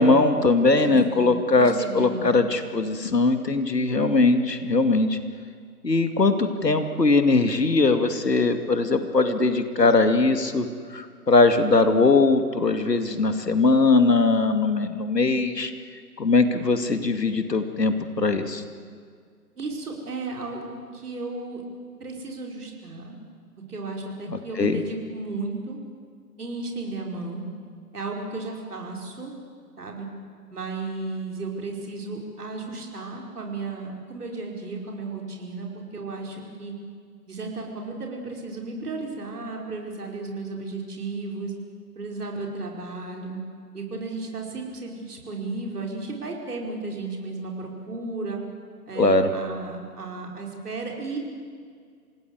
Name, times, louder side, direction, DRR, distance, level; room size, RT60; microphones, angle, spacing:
voice 1, 0.0-5.2 5.8-15.7 16.2-18.6 24.3-24.8 49.0-49.3, left 3 dB, 80° left, 8 dB, 2.5 m, -21 dB
voice 2, 0.8-2.3 19.6-21.6 22.0-23.1 23.7-25.8 26.4-27.4 27.9-29.3 29.8-30.1 30.5-36.7 37.3-41.5 41.9-43.4 43.7-48.4 48.9-51.2, right 3 dB, 70° right, 1 dB, 5.0 m, -34 dB
27.0 x 19.0 x 8.1 m, 2.1 s
figure-of-eight pair, 140°, 48 cm